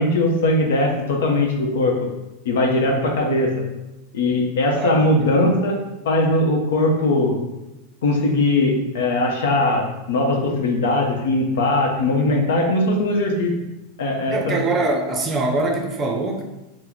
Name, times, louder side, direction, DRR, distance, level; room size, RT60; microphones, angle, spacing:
voice 1, 0.0-1.9 2.5-3.5 4.1-5.8 6.0-7.4 8.0-13.5 14.0-14.6, left 2 dB, 85° left, 2 dB, 0.7 m, -20 dB
voice 2, 4.7-5.3 14.3-16.4, right 2 dB, 25° right, 2 dB, 0.5 m, -23 dB
2.9 x 2.0 x 3.9 m, 1.0 s
supercardioid pair, 135°, 0 cm